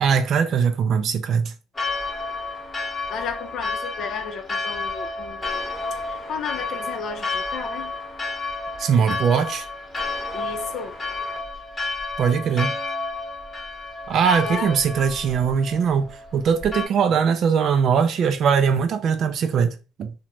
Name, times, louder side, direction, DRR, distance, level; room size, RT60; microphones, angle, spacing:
voice 1, 0.0-1.5 8.8-9.7 12.2-12.8 14.1-20.1, right 6 dB, 55° right, 0.4 m, -21 dB
Church bell, 1.7-16.9, left 3 dB, 25° left, 0.9 m, -31 dB
voice 2, 3.1-5.7 6.1-7.9 10.3-11.0 14.4-14.7, left 6 dB, 60° left, 0.5 m, -33 dB
2.5 x 2.1 x 2.9 m
cardioid pair, 90°, 0 cm